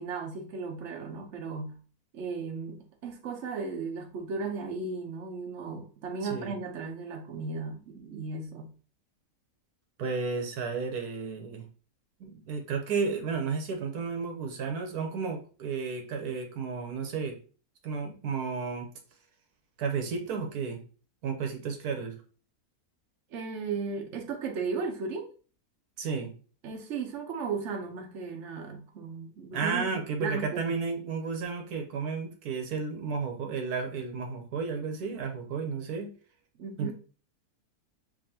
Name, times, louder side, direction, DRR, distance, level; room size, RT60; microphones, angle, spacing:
voice 1, 0.0-1.8 2.1-8.7 23.3-25.3 26.6-30.7 36.5-36.9, right 4 dB, 55° right, 1.1 m, -36 dB
voice 2, 10.0-11.7 12.2-17.4 17.8-18.9 19.8-20.8 21.2-22.2 26.0-26.3 29.5-36.1 36.8-36.9, right 5 dB, 80° right, 1.4 m, -32 dB
7.2 x 2.6 x 2.8 m
omnidirectional pair, 1.6 m